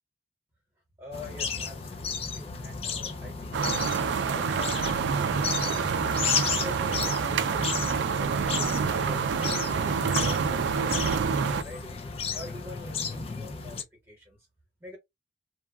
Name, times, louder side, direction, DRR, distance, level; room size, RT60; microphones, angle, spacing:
voice 1, 1.0-3.9 4.2-12.0 12.3-14.5 14.8-15.0, left 1 dB, 10° right, 1.1 m, -45 dB
sound 1, 1.1-13.8, left 6 dB, 30° left, 0.4 m, -34 dB
sound 2, 3.5-11.6, right 6 dB, 70° right, 0.3 m, -27 dB
2.9 x 2.3 x 2.3 m
head